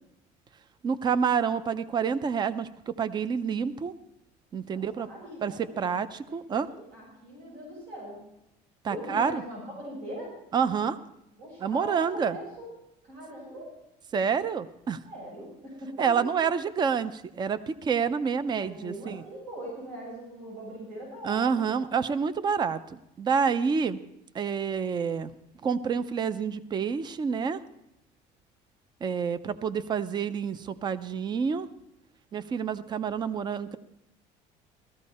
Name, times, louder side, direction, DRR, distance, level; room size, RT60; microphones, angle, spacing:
voice 1, 0.8-3.9 4.5-5.1 5.4-6.7 8.8-9.4 10.5-11.0 11.6-12.4 14.1-15.0 16.0-19.2 21.2-24.0 24.3-25.3 25.6-27.6 29.0-31.7 32.3-33.8, right 6 dB, 25° right, 14 dB, 0.6 m, -28 dB
voice 2, 4.7-5.9 6.3-8.2 8.9-10.4 11.4-12.7 13.0-13.7 15.1-16.2 18.6-21.6, right 1 dB, 75° right, -3 dB, 7.0 m, -41 dB
16.5 x 14.0 x 4.2 m, 0.84 s
cardioid pair, 140°, 16 cm